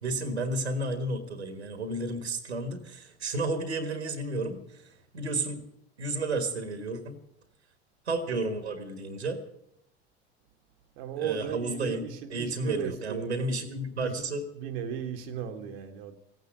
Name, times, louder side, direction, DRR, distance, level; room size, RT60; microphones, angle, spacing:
voice 1, 0.0-5.6 6.0-7.1 8.0-9.4 11.2-14.4, right 2 dB, 90° right, 1.6 m, -32 dB
voice 2, 11.0-13.6 14.0-14.3 14.5-16.2, right 8 dB, 65° right, 1.3 m, -36 dB
16.0 x 9.1 x 9.0 m
figure-of-eight pair, 65°, 32 cm